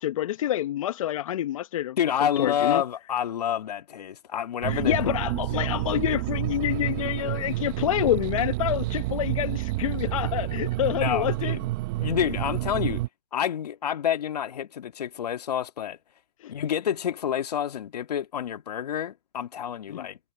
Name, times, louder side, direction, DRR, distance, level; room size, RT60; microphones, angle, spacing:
voice 1, 0.0-2.8 4.6-11.6 16.4-16.5 19.9-20.1, left 12 dB, 55° left, 0.9 m, -27 dB
voice 2, 2.0-5.0 11.0-11.7 12.0-13.0 13.3-16.0 16.5-20.2, left 9 dB, 70° left, 1.8 m, -28 dB
sound 1, 4.6-13.1, right 19 dB, 30° right, 0.7 m, -29 dB
hypercardioid pair, 155°, 21 cm